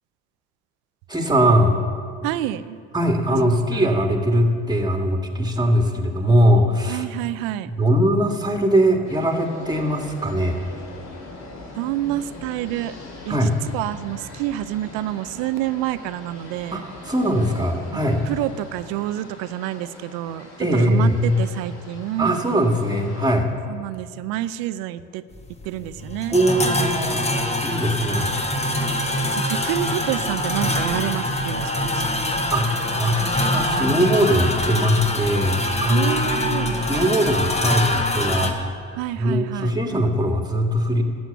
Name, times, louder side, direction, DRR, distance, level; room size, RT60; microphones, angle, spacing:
voice 1, 1.1-1.8 2.9-7.0 7.6-10.6 13.3-13.6 16.7-18.2 20.6-21.4 22.2-23.5 26.3-27.3 27.6-28.3 32.5-32.7 33.0-41.0, equal, 10° right, 3 dB, 1.7 m, -21 dB
voice 2, 2.2-2.8 3.7-3.8 6.9-7.7 11.8-12.9 13.3-16.8 17.9-22.3 23.7-25.2 25.6-26.4 29.4-32.1 35.9-36.9 39.0-39.7, right 14 dB, 80° right, 14 dB, 0.5 m, -28 dB
sound 1, 9.0-23.3, left 2 dB, 50° left, 2.6 m, -41 dB
sound 2, 25.3-38.5, left 1 dB, 20° left, 1.4 m, -24 dB
12.5 x 7.9 x 6.9 m, 2.2 s
supercardioid pair, 65°, 34 cm